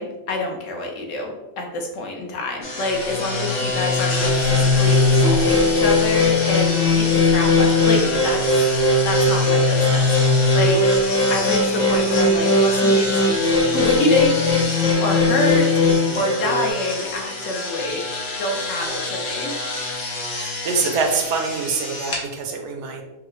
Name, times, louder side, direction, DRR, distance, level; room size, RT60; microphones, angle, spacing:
voice 1, 0.0-8.6 9.0-10.8 11.3-13.2 13.7-19.5 20.0-20.3, left 2 dB, 70° left, 1 dB, 1.0 m, -27 dB
sound 1, 2.6-22.2, left 2 dB, 85° left, 1.3 m, -28 dB
sound 2, 4.2-16.7, left 2 dB, 20° left, 0.7 m, -18 dB
voice 2, 20.3-23.0, right 4 dB, 65° right, 3 dB, 0.8 m, -25 dB
4.6 x 2.1 x 3.0 m, 1.1 s
omnidirectional pair, 1.4 m